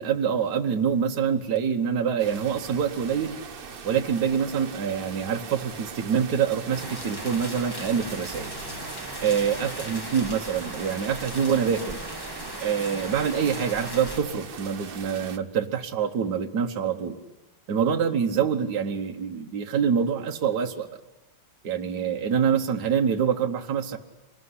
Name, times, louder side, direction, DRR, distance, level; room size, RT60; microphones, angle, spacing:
voice 1, 0.0-3.4 3.8-8.5 9.2-12.0 12.6-17.2 17.7-20.9 21.6-24.0, right 7 dB, 60° right, 3 dB, 1.7 m, -25 dB
sound 1, 2.2-15.4, right 6 dB, 40° right, 0.8 m, -41 dB
sound 2, 6.7-14.2, equal, 10° left, 2.1 m, -38 dB
26.0 x 20.0 x 9.7 m, 1.1 s
omnidirectional pair, 2.1 m